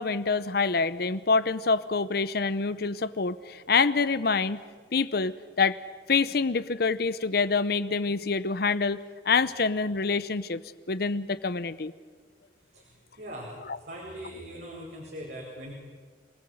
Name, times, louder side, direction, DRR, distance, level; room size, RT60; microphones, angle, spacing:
voice 1, 0.0-4.6 4.9-5.3 5.6-5.8 6.1-10.6 10.9-11.9 13.7-13.8, left 4 dB, 60° left, 15 dB, 0.8 m, -26 dB
voice 2, 13.2-13.5 13.8-15.7, equal, 65° right, -3 dB, 4.8 m, -40 dB
27.0 x 18.5 x 7.9 m, 1.5 s
head